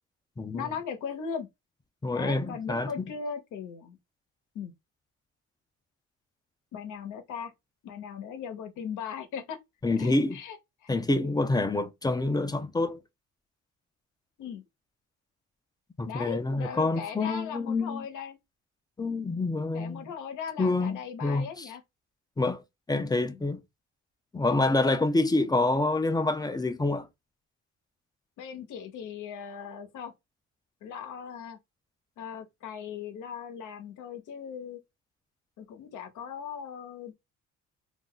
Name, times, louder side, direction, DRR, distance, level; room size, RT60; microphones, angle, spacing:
voice 1, 0.5-1.5 2.1-4.0 4.5-4.7 6.7-7.5 7.8-9.6 10.0-10.9 14.4-14.6 16.0-18.4 19.7-21.8 23.2-23.4 28.4-30.1 30.8-31.6 32.2-34.8 35.6-37.1, left 7 dB, 85° left, 0.8 m, -38 dB
voice 2, 2.0-2.9 9.8-10.4 10.9-13.0 16.0-18.0 19.0-20.1 20.6-21.7 22.4-22.6 22.9-23.6 24.3-27.1, left 2 dB, 15° left, 0.4 m, -27 dB
2.5 x 2.2 x 3.7 m
cardioid pair, 90°, 30 cm